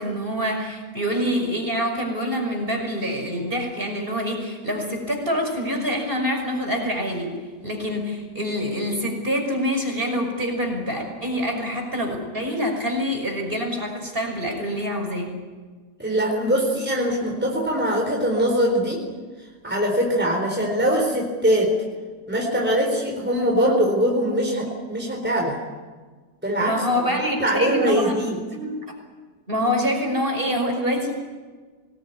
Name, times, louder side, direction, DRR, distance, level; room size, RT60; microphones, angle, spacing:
voice 1, 0.0-7.3 7.6-15.3 26.6-28.1 28.5-28.7 29.5-31.1, equal, 35° right, 2 dB, 5.9 m, -26 dB
voice 2, 16.0-19.0 19.6-21.7 22.3-25.6 26.4-28.4, equal, 5° right, 0 dB, 4.3 m, -22 dB
25.0 x 19.5 x 9.8 m, 1.4 s
omnidirectional pair, 1.7 m